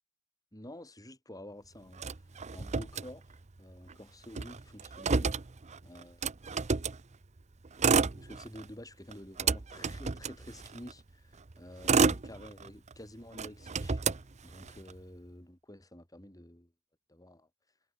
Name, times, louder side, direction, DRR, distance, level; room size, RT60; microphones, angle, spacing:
voice 1, 0.5-2.0 2.5-5.3 5.8-6.2 8.1-14.0 14.4-16.7 17.1-17.5, left 1 dB, 15° left, 5.0 m, -49 dB
Motor vehicle (road), 2.0-3.6 3.9-4.0 4.2-7.0 7.6-8.7 9.1-10.9 11.5-12.9 13.3-14.9, right 4 dB, 30° right, 0.7 m, -30 dB
head